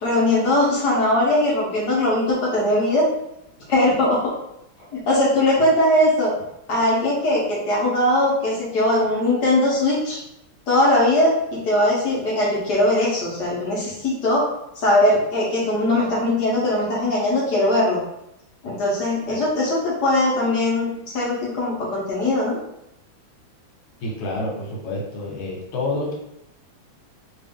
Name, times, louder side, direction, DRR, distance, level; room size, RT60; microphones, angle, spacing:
voice 1, 0.0-3.1 3.7-4.3 4.9-6.3 6.7-10.2 10.7-14.4 14.8-18.0 18.6-22.6, left 1 dB, 60° left, -5 dB, 1.4 m, -20 dB
voice 2, 24.0-26.1, left 2 dB, 90° left, -1 dB, 1.8 m, -28 dB
3.5 x 2.5 x 3.5 m, 0.83 s
omnidirectional pair, 2.2 m